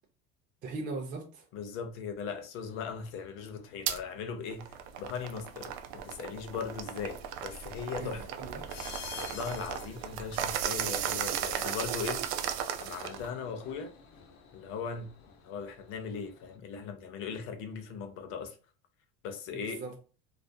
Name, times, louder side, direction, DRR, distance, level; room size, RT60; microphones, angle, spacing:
voice 1, 0.6-1.4 8.0-8.7 19.5-19.9, right 3 dB, 30° right, 0.4 m, -39 dB
voice 2, 1.5-4.7 5.0-8.3 9.1-12.2 12.8-13.9 14.5-15.1 15.4-18.6 19.2-19.8, left 6 dB, 45° left, 0.5 m, -39 dB
sound 1, 2.6-16.6, left 6 dB, 85° left, 0.6 m, -52 dB
sound 2, 3.9-4.0 4.5-13.3, right 9 dB, 90° right, 0.5 m, -36 dB
2.3 x 2.1 x 2.5 m
cardioid pair, 165°, 30 cm